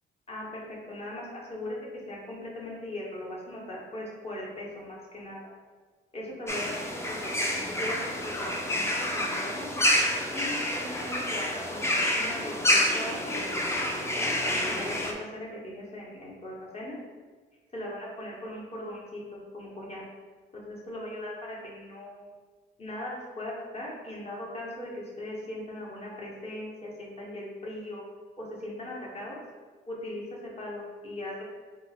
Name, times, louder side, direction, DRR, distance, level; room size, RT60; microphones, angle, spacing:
voice 1, 0.3-1.8 2.1-5.4 6.1-8.1 8.4-9.7 10.3-17.0 17.7-20.0 20.5-22.3 22.8-28.0 28.4-29.4 29.9-31.4, left 1 dB, 30° left, -4 dB, 1.3 m, -39 dB
sound 1, 6.5-15.1, left 1 dB, 15° left, 0.6 m, -28 dB
3.1 x 3.0 x 4.2 m, 1.4 s
cardioid pair, 90°, 20 cm